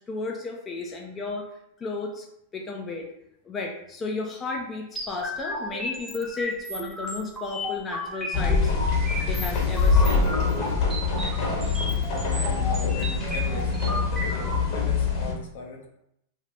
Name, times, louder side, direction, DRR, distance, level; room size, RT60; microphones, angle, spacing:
voice 1, 0.0-1.5 1.8-2.3 2.5-3.1 3.4-8.7 9.3-10.3, left 3 dB, 25° left, 0 dB, 0.5 m, -33 dB
sound 1, 5.0-14.6, left 1 dB, 5° right, 0.8 m, -34 dB
sound 2, 8.3-15.3, left 5 dB, 45° left, 1.0 m, -24 dB
voice 2, 12.3-15.9, left 3 dB, 60° left, 1 dB, 0.6 m, -38 dB
2.6 x 2.4 x 3.2 m, 0.77 s
figure-of-eight pair, 95°, 0 cm